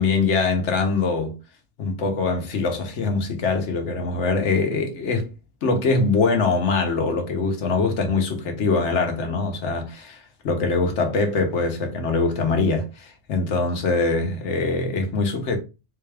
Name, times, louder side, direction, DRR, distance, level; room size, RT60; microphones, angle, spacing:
voice 1, 0.0-1.3 1.8-5.3 5.6-10.2 10.4-15.6, left 4 dB, 80° left, 1.2 m, -23 dB
4.0 x 2.4 x 3.3 m
omnidirectional pair, 1.2 m